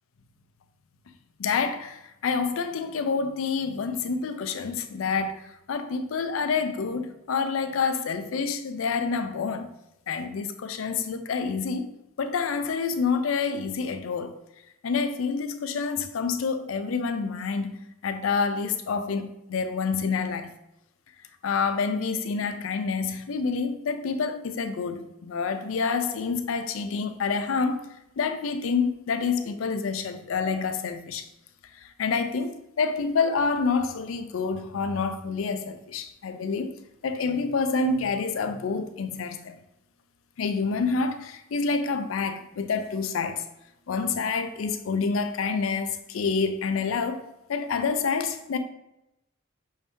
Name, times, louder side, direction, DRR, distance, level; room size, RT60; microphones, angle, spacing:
voice 1, 1.4-9.7 10.1-11.9 12.2-14.4 14.8-17.7 18.0-20.5 21.4-27.9 28.2-31.3 32.0-36.7 37.0-39.6 40.4-43.4 43.9-47.2 47.5-48.6, left 5 dB, 85° left, 0.4 m, -28 dB
5.4 x 2.7 x 3.5 m
head